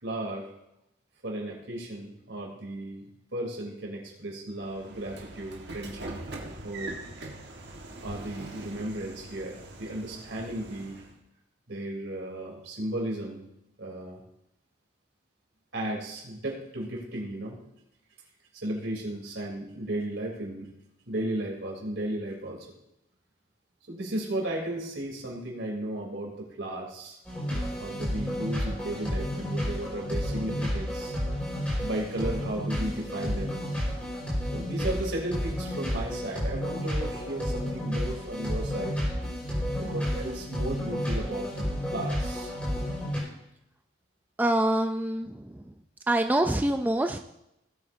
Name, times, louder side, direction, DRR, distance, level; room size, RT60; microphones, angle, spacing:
voice 1, 0.0-0.5 1.2-6.1 6.6-6.9 8.0-11.0 11.7-13.4 13.8-14.2 15.7-17.6 18.5-20.7 21.1-22.7 23.9-27.2 27.5-31.1 31.8-33.6 34.5-39.0 39.8-42.5, right 1 dB, 75° right, -1 dB, 3.3 m, -35 dB
Train / Sliding door, 4.6-11.2, right 2 dB, 60° right, 1.5 m, -42 dB
sound 1, 27.2-43.2, equal, 5° left, 4.7 m, -31 dB
voice 2, 44.4-45.5 46.1-47.2, right 1 dB, 10° right, 6 dB, 0.3 m, -25 dB
18.0 x 8.6 x 2.7 m, 0.82 s
head